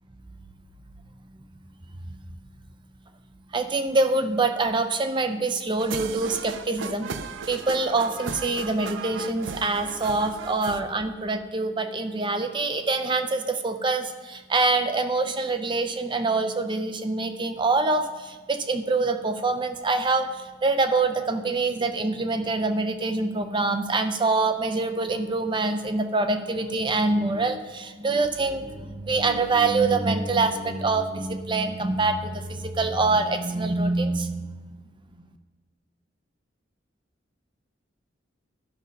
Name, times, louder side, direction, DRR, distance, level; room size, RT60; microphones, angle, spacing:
voice 1, 3.5-7.1 7.5-35.3, right 3 dB, 25° right, 8 dB, 0.6 m, -25 dB
sound 1, 5.8-10.8, right 5 dB, 70° right, 0.5 m, -36 dB
11.5 x 5.3 x 5.3 m, 1.3 s
head